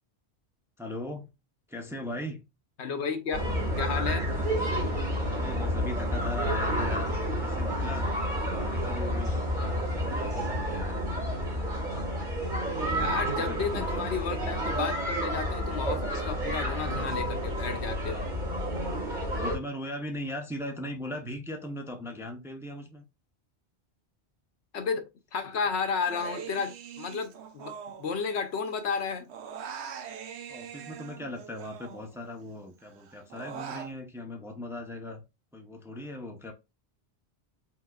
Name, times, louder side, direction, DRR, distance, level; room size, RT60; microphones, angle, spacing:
voice 1, 0.8-1.3 1.7-2.4 5.3-8.1 8.5-9.4 10.0-11.1 12.9-14.1 19.3-23.0 30.5-35.2 35.5-36.5, left 1 dB, 5° right, 0.6 m, -39 dB
voice 2, 2.8-3.5 3.8-4.3 12.9-18.3 24.7-25.1 25.3-27.7 28.0-29.3, left 5 dB, 80° left, 1.1 m, -32 dB
sound 1, 3.3-19.5, equal, 45° right, 2.4 m, -30 dB
Human voice, 26.0-28.7 28.9-32.4 32.8-33.9, right 7 dB, 80° right, 1.0 m, -43 dB
5.0 x 3.7 x 2.3 m
omnidirectional pair, 1.1 m